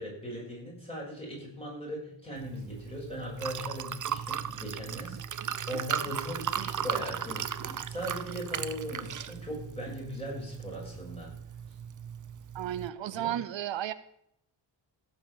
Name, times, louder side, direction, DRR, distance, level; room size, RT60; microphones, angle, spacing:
voice 1, 0.0-11.3 13.1-13.3, equal, 15° left, -4 dB, 6.8 m, -39 dB
Liquid, 2.4-12.9, right 8 dB, 45° right, 0.6 m, -37 dB
voice 2, 12.5-13.9, right 12 dB, 85° right, 14 dB, 0.7 m, -33 dB
16.0 x 5.8 x 7.2 m, 0.73 s
wide cardioid pair, 125°, 44 cm